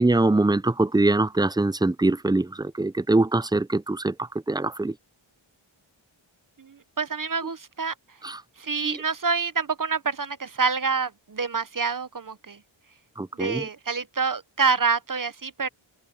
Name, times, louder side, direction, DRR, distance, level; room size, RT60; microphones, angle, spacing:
voice 1, 0.0-5.0 8.2-8.4 8.8-9.0 13.2-13.7, right 2 dB, 10° right, 0.4 m, -23 dB
voice 2, 6.6-7.9 8.6-12.6 13.4-15.7, right 5 dB, 40° right, 0.9 m, -27 dB
wide cardioid pair, 50°, 50 cm